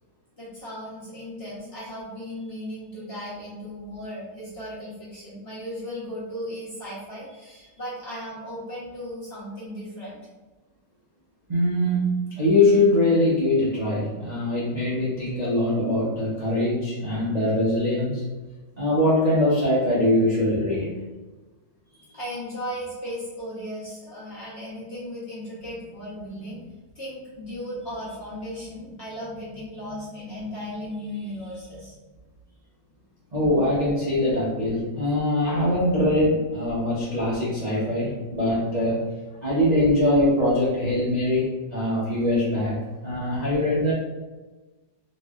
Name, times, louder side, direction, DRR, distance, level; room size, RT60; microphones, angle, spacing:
voice 1, 0.4-10.2 21.9-26.6 26.9-32.0, equal, 45° left, -8 dB, 1.0 m, -36 dB
voice 2, 11.5-18.2 18.8-20.9 33.3-39.0 39.4-42.8 43.0-43.9, left 1 dB, 45° right, -9 dB, 0.5 m, -22 dB
3.9 x 2.6 x 2.4 m, 1.2 s
omnidirectional pair, 1.9 m